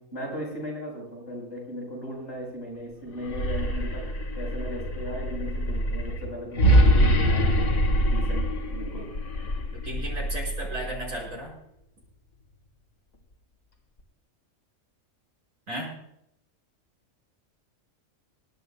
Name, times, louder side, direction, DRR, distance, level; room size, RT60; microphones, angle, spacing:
voice 1, 0.0-7.7 8.1-9.1, equal, 55° left, -3 dB, 5.1 m, -37 dB
sound 1, 3.1-11.3, equal, 70° left, 2.1 m, -24 dB
voice 2, 9.7-11.6 15.7-16.0, right 1 dB, 85° right, -4 dB, 5.5 m, -35 dB
25.5 x 11.5 x 2.3 m, 0.79 s
omnidirectional pair, 1.3 m